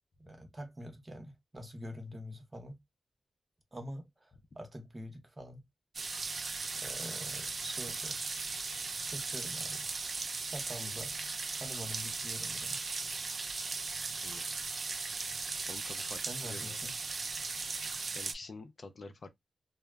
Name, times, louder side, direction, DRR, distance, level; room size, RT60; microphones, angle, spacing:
voice 1, 0.2-2.8 3.7-5.6 6.8-8.2 9.0-9.9 10.4-11.1 11.5-12.8 16.3-16.9, equal, 25° right, 0.8 m, -45 dB
sound 1, 5.9-18.3, right 4 dB, 55° right, 0.4 m, -37 dB
voice 2, 15.7-16.8 18.1-19.3, left 3 dB, 60° left, 0.4 m, -48 dB
2.1 x 2.0 x 3.3 m
wide cardioid pair, 80°, 0 cm